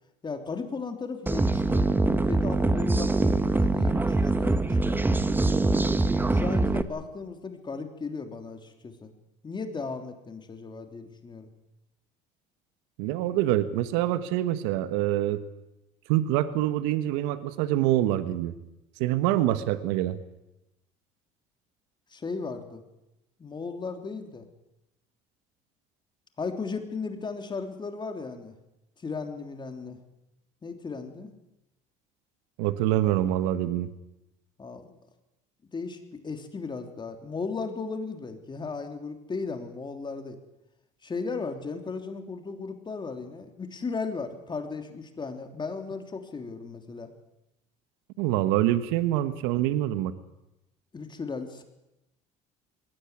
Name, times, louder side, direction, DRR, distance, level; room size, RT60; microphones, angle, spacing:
voice 1, 0.2-5.2 6.3-9.1 9.4-11.5 22.1-22.8 23.4-24.5 26.4-28.5 29.0-30.0 30.6-31.3 34.6-34.9 35.7-40.4 41.0-47.1 50.9-51.6, left 4 dB, 25° left, 6 dB, 3.2 m, -36 dB
sound 1, 1.3-6.8, right 2 dB, 10° right, 1.4 m, -24 dB
voice 2, 13.0-15.4 16.1-18.5 19.0-20.2 32.6-33.9 48.2-50.1, right 13 dB, 80° right, 12 dB, 1.4 m, -25 dB
21.0 x 16.5 x 9.8 m, 0.92 s
supercardioid pair, 90°, 17 cm